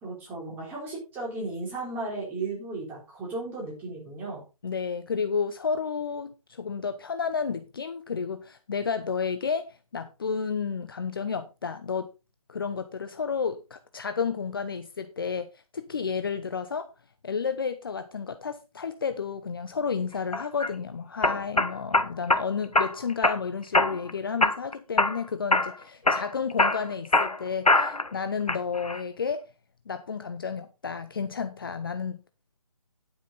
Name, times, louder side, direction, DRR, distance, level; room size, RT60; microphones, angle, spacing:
voice 1, 0.0-4.4, right 3 dB, 10° right, 4.0 m, -35 dB
voice 2, 4.6-12.1 12.5-16.9 17.2-29.5 29.9-32.2, left 6 dB, 40° left, 0.8 m, -31 dB
sound 1, 20.3-20.7 21.2-22.4 22.7-23.4 23.7-24.1 24.4-25.2 25.5-25.7 26.1-28.1 28.5-29.0, left 2 dB, 80° left, 1.4 m, -23 dB
10.0 x 9.1 x 4.1 m
figure-of-eight pair, 150°, 19 cm